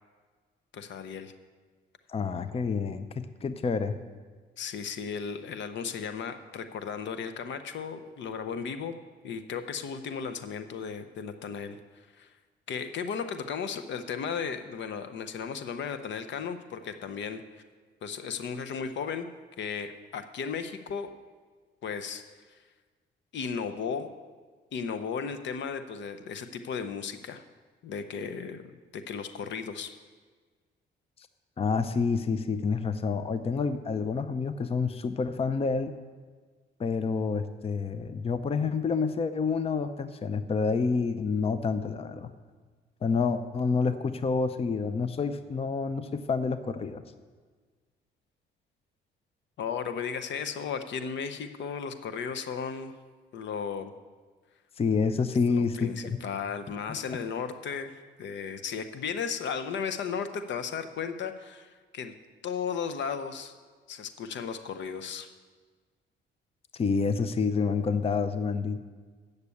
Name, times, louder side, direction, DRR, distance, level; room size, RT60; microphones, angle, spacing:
voice 1, 0.7-1.3 4.6-8.9 9.2-12.3 12.7-17.4 18.0-19.3 19.6-21.1 21.8-22.2 23.3-24.1 24.7-27.4 27.8-28.6 28.9-29.9 49.6-52.9 53.3-53.9 55.5-62.1 62.4-63.5 63.9-65.3, left 6 dB, 65° left, 9 dB, 0.7 m, -35 dB
voice 2, 2.1-4.0 31.6-35.9 36.8-42.3 43.0-47.0 54.8-56.2 56.9-57.0 66.7-68.8, left 5 dB, 30° left, 11 dB, 0.5 m, -28 dB
8.2 x 6.6 x 8.4 m, 1.5 s
cardioid pair, 90°, 20 cm